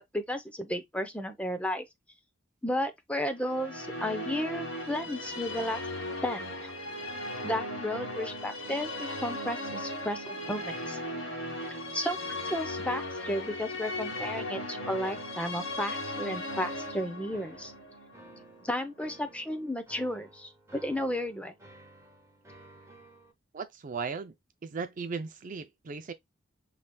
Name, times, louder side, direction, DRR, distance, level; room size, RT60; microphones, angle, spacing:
voice 1, 0.0-1.9 2.6-5.8 6.2-6.7 7.4-11.0 11.9-17.7 18.6-21.5, left 1 dB, 5° left, 0.6 m, -33 dB
Musical instrument, 3.4-18.8, left 1 dB, 80° left, 1.6 m, -37 dB
sound 1, 16.5-23.3, right 1 dB, 15° right, 1.2 m, -55 dB
voice 2, 23.5-24.3 24.6-26.1, right 5 dB, 40° right, 0.4 m, -37 dB
5.8 x 3.3 x 2.2 m
head